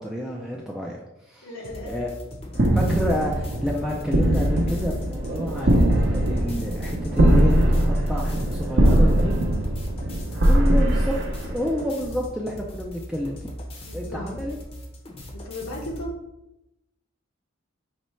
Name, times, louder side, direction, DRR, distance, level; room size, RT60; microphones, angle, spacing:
voice 1, 0.0-1.5 1.8-2.1 2.7-7.8 8.1-9.3 10.2-11.2 11.5-13.5 13.9-14.6, equal, 5° right, -2 dB, 0.3 m, -29 dB
voice 2, 1.4-2.0 8.8-9.4 13.8-14.5 15.4-16.2, left 1 dB, 85° left, -2 dB, 1.0 m, -36 dB
sound 1, 1.6-16.1, equal, 25° left, 0.6 m, -39 dB
sound 2, 2.5-12.1, right 1 dB, 55° right, 0.6 m, -21 dB
5.3 x 3.1 x 3.1 m, 0.90 s
head